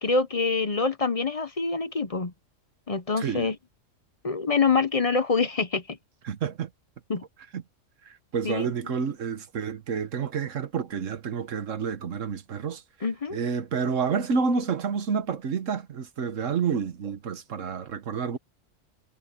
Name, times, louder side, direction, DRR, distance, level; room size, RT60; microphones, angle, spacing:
voice 1, 0.0-2.3 2.9-3.6 4.2-6.0 7.1-7.2 8.4-8.7 13.0-13.4, left 4 dB, 35° left, 0.7 m, -25 dB
voice 2, 3.2-3.5 6.2-6.7 7.5-7.6 8.0-12.8 13.3-18.4, right 6 dB, 80° right, 1.5 m, -29 dB
omnidirectional pair, 1.3 m